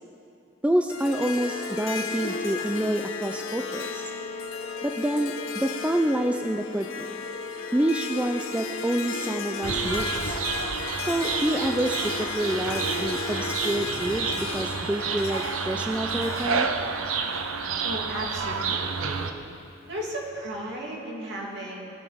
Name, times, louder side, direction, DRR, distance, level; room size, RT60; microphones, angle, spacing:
voice 1, 0.6-4.0 4.8-7.1 7.7-10.4 11.1-16.7, right 1 dB, 5° right, 5 dB, 0.3 m, -27 dB
Harp, 0.9-18.2, left 4 dB, 80° left, 0.8 m, -35 dB
Wind instrument woodwind instrument, 1.4-9.2, left 5 dB, 25° left, 0.7 m, -39 dB
sound 1, 9.6-19.3, right 5 dB, 85° right, 0.7 m, -30 dB
voice 2, 17.8-19.3 19.9-21.8, right 1 dB, 55° right, -3 dB, 2.6 m, -34 dB
20.5 x 7.3 x 5.0 m, 2.7 s
head